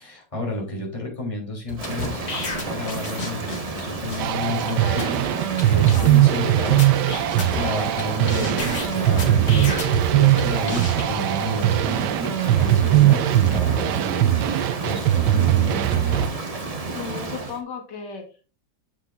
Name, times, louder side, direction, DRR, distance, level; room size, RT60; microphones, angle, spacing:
voice 1, 0.0-2.3 2.6-5.0 5.7-6.8 7.5-16.2, equal, 20° left, -2 dB, 3.0 m, -30 dB
sound 1, 1.7-3.8 4.1-4.2 4.7-4.8 5.0-5.2 5.6-5.7 5.9-6.4 6.8-8.0 8.3-10.0 10.4-11.0, left 4 dB, 65° left, 2.6 m, -32 dB
Rain, 1.8-17.6, right 3 dB, 30° right, 0.8 m, -32 dB
sound 2, 4.2-16.3, right 13 dB, 85° right, 1.2 m, -20 dB
voice 2, 4.7-5.2 5.6-6.8 7.4-7.8 16.9-18.5, left 5 dB, 85° left, 2 dB, 2.3 m, -36 dB
8.8 x 7.6 x 2.5 m, 0.33 s
omnidirectional pair, 1.8 m